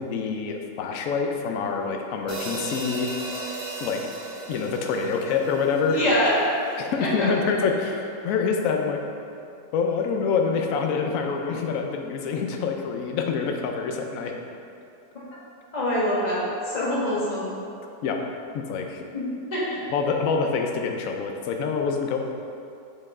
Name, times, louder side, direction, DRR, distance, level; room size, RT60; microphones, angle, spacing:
voice 1, 0.0-3.1 3.8-4.0 4.5-6.0 6.8-9.0 9.7-14.4 18.0-18.2 18.5-19.0 19.9-22.2, left 5 dB, 65° left, 3 dB, 0.9 m, -26 dB
sound 1, 2.3-6.6, right 2 dB, 85° right, 0.4 m, -36 dB
voice 2, 5.9-6.3 6.6-6.7 7.0-7.3 15.7-17.5 19.1-19.8, left 1 dB, 25° left, -8 dB, 1.4 m, -25 dB
6.3 x 5.3 x 3.7 m, 2.6 s
omnidirectional pair, 1.9 m